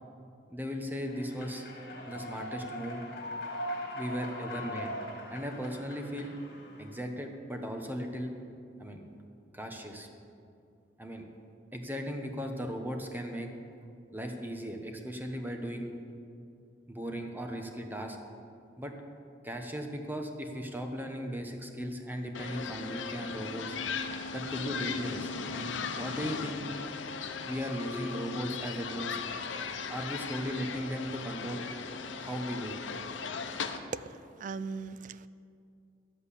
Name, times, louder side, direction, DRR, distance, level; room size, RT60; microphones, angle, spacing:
voice 1, 0.5-1.7 2.1-3.0 3.9-4.9 5.3-6.4 6.8-8.3 8.8-9.1 9.5-10.1 11.0-11.2 11.7-13.5 14.1-15.9 16.9-18.2 18.8-18.9 19.4-23.8 24.3-26.6 27.4-29.2 29.9-31.6 32.2-32.8, equal, 10° right, 3 dB, 1.1 m, -37 dB
Human voice / Clapping / Cheering, 1.1-7.1, left 1 dB, 55° left, 2.3 m, -41 dB
sound 1, 22.3-33.8, left 5 dB, 90° left, 0.8 m, -37 dB
voice 2, 33.9-35.3, right 4 dB, 45° right, 16 dB, 0.4 m, -39 dB
11.5 x 7.9 x 8.4 m, 2.5 s
head